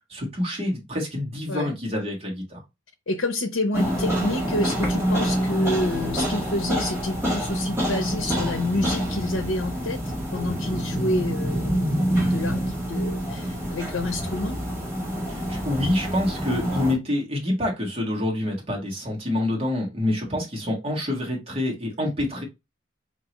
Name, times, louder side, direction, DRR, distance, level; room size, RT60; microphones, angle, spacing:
voice 1, 0.1-2.6 15.3-22.4, left 1 dB, 30° right, 1.5 m, -27 dB
voice 2, 3.1-10.0 10.3-14.6, left 2 dB, 80° left, 0.7 m, -28 dB
sound 1, 3.7-16.9, equal, 15° right, 1.6 m, -26 dB
4.7 x 2.9 x 2.9 m
head